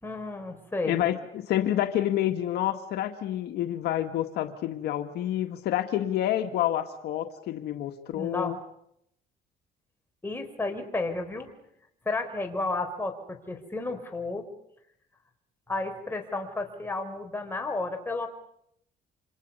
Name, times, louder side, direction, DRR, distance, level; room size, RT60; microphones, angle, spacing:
voice 1, 0.0-1.1 8.1-8.6 10.2-11.5 12.1-14.5 15.7-18.3, left 3 dB, 15° left, 3 dB, 4.1 m, -32 dB
voice 2, 0.8-8.6, left 12 dB, 75° left, 6 dB, 1.7 m, -28 dB
28.0 x 26.5 x 5.5 m, 0.75 s
cardioid pair, 110°, 17 cm